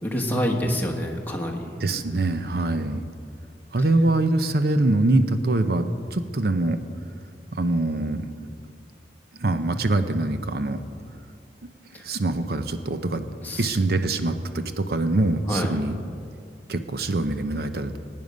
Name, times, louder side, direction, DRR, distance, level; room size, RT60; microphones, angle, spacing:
voice 1, 0.0-1.7 11.9-12.1 13.4-13.7 15.5-15.7, equal, 10° left, 0 dB, 1.3 m, -27 dB
voice 2, 1.8-3.0 3.7-6.8 7.5-8.2 9.4-10.8 12.0-13.2 13.6-15.9 16.7-18.0, right 2 dB, 60° right, 9 dB, 0.7 m, -24 dB
16.0 x 9.6 x 5.2 m, 2.3 s
head